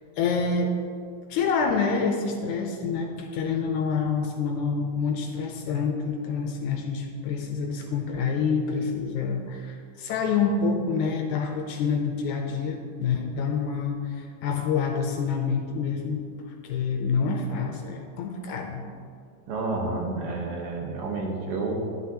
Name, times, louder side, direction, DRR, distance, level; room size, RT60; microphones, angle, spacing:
voice 1, 0.2-0.7 1.3-16.2 16.6-18.9, left 5 dB, 75° left, 3 dB, 1.9 m, -27 dB
voice 2, 19.5-21.8, right 3 dB, 85° right, 0 dB, 3.1 m, -30 dB
11.0 x 10.5 x 3.0 m, 2.3 s
omnidirectional pair, 3.8 m